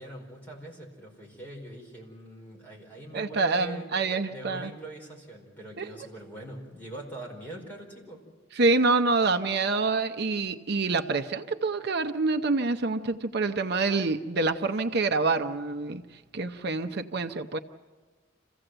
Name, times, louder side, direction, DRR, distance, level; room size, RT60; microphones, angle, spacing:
voice 1, 0.0-3.9 4.3-8.2, right 1 dB, 10° left, -2 dB, 4.9 m, -42 dB
voice 2, 3.1-4.7 5.8-5.9 8.5-16.0 16.3-17.6, right 3 dB, 60° right, 7 dB, 0.7 m, -26 dB
27.0 x 16.0 x 7.9 m, 1.4 s
head